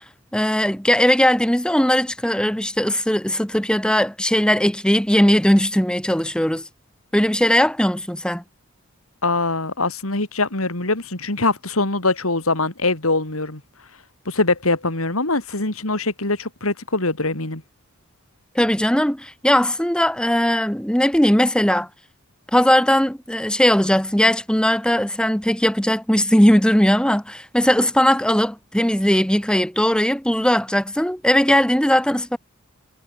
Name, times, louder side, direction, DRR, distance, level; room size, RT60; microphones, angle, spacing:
voice 1, 0.3-6.7 7.1-8.4 18.5-21.9 22.5-32.4, equal, 5° left, 1.3 m, -19 dB
voice 2, 9.2-13.6 14.3-17.6, left 2 dB, 85° left, 3.8 m, -23 dB
head